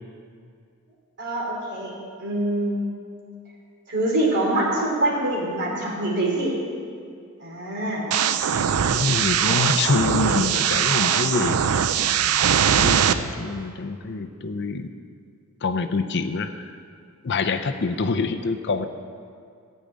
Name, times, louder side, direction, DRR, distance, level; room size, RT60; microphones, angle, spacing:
voice 1, 1.2-2.8 3.9-6.6 7.4-8.1, right 1 dB, 50° right, -3 dB, 3.0 m, -25 dB
sound 1, 8.1-13.1, right 8 dB, 75° right, 0.5 m, -21 dB
voice 2, 8.9-11.6 12.8-14.9 15.6-16.6 17.2-18.9, left 4 dB, 50° left, 8 dB, 0.5 m, -25 dB
14.0 x 5.2 x 8.8 m, 2.3 s
head